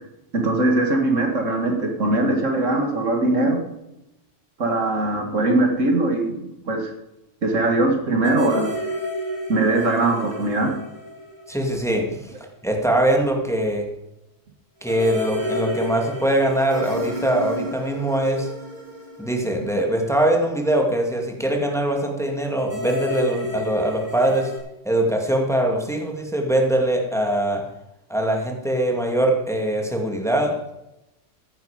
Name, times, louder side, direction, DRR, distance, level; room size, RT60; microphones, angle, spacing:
voice 1, 0.3-3.6 4.6-6.9 7.4-8.7 9.5-10.8, right 2 dB, 75° right, 4 dB, 2.3 m, -21 dB
sound 1, 8.2-12.0 12.3-12.4 14.8-20.2 22.6-24.6, left 1 dB, 35° right, 7.0 m, -31 dB
voice 2, 11.5-12.3 12.6-13.9 14.8-18.5 19.2-24.5 24.8-27.6 28.1-30.5, right 1 dB, ahead, 1 dB, 2.4 m, -22 dB
15.0 x 10.5 x 5.1 m, 0.89 s
omnidirectional pair, 1.3 m